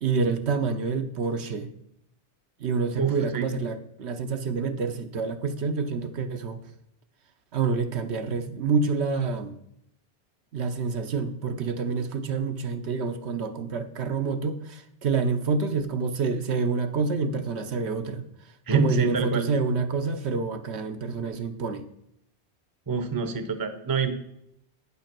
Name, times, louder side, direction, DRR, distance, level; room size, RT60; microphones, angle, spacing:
voice 1, 0.0-1.7 2.6-6.6 7.5-9.5 10.5-18.2 18.7-21.8, right 4 dB, 75° right, 7 dB, 1.1 m, -27 dB
voice 2, 3.0-3.5 18.7-19.5 22.9-24.1, right 4 dB, 20° right, 9 dB, 0.7 m, -26 dB
9.4 x 5.7 x 5.9 m, 0.76 s
omnidirectional pair, 1.2 m